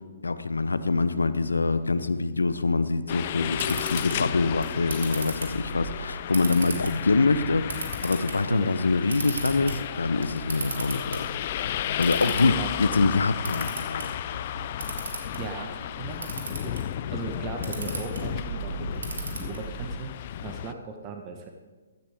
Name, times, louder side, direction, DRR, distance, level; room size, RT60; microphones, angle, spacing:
voice 1, 0.2-11.3 12.0-14.1, left 3 dB, 80° left, 13 dB, 0.8 m, -25 dB
sound 1, 3.1-20.7, left 11 dB, 45° left, 0.5 m, -33 dB
Camera, 3.2-19.9, right 3 dB, 75° right, 2.7 m, -38 dB
voice 2, 8.5-8.9 12.2-13.0 15.4-21.5, right 5 dB, 30° right, 3 dB, 1.1 m, -38 dB
15.0 x 12.0 x 3.6 m, 1.3 s
figure-of-eight pair, 130°, 0 cm